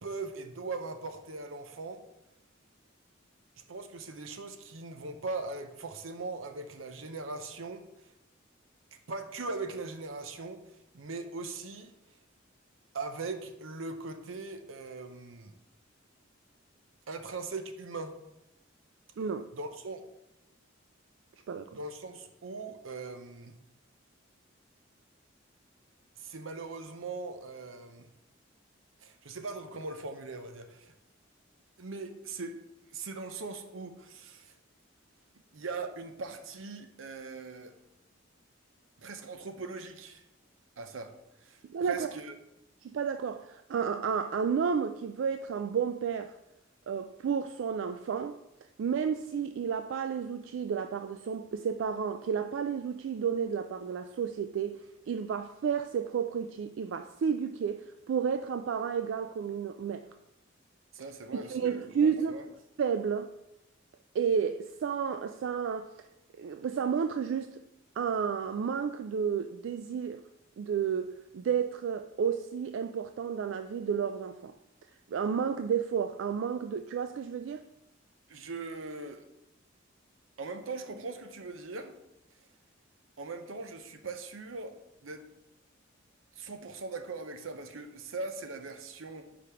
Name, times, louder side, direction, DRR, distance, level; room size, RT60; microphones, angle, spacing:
voice 1, 0.0-2.0 3.7-8.1 9.1-11.9 12.9-15.6 17.1-18.2 19.5-20.1 21.7-23.6 26.2-28.1 29.0-30.9 31.8-32.6 32.9-34.5 35.5-37.7 39.0-40.2 40.8-41.1 41.4-42.3 60.9-62.4 78.3-79.2 80.4-81.9 83.2-84.8 85.0-85.2 86.4-89.3, right 3 dB, 85° right, 0.7 m, -40 dB
voice 2, 21.5-21.8 41.6-42.1 42.8-46.4 46.9-48.4 48.8-60.1 61.3-62.4 62.8-63.3 64.1-65.9 66.4-67.6 68.0-70.2 70.6-74.5 75.1-77.7, right 7 dB, 65° right, 0.3 m, -31 dB
5.0 x 5.0 x 5.7 m
head